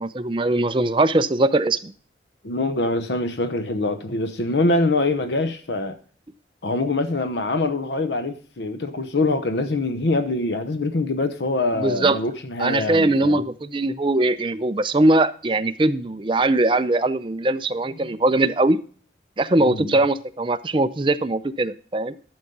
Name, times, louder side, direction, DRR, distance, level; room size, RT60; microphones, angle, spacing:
voice 1, 0.0-1.9 11.7-12.2 12.6-18.8 19.4-22.2, right 2 dB, 30° right, 0.5 m, -21 dB
voice 2, 2.4-6.0 6.6-13.4 19.6-20.0, left 2 dB, 80° left, 0.8 m, -24 dB
12.0 x 7.1 x 5.3 m
head